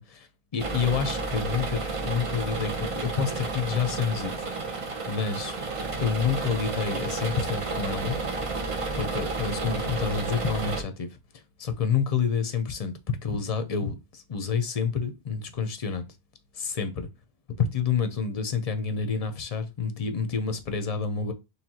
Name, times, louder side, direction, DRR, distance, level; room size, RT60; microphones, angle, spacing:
voice 1, 0.0-4.3 5.1-5.5 6.0-8.2 9.0-16.1 16.5-17.1 17.6-21.3, left 6 dB, 40° left, 0.6 m, -28 dB
sound 1, 0.6-10.8, right 3 dB, 35° right, 0.7 m, -31 dB
4.5 x 3.3 x 2.8 m
omnidirectional pair, 1.1 m